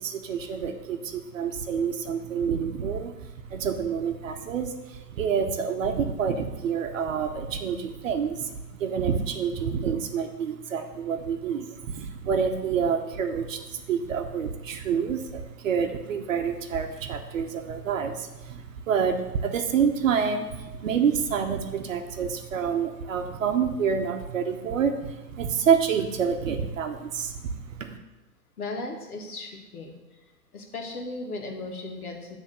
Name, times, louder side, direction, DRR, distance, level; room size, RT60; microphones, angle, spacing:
voice 1, 0.0-3.1 3.5-28.0, right 7 dB, 55° right, 5 dB, 0.9 m, -28 dB
voice 2, 28.6-29.9 30.5-32.4, left 2 dB, 65° left, 1 dB, 1.9 m, -36 dB
9.9 x 3.5 x 6.6 m, 1.1 s
hypercardioid pair, 140°, 48 cm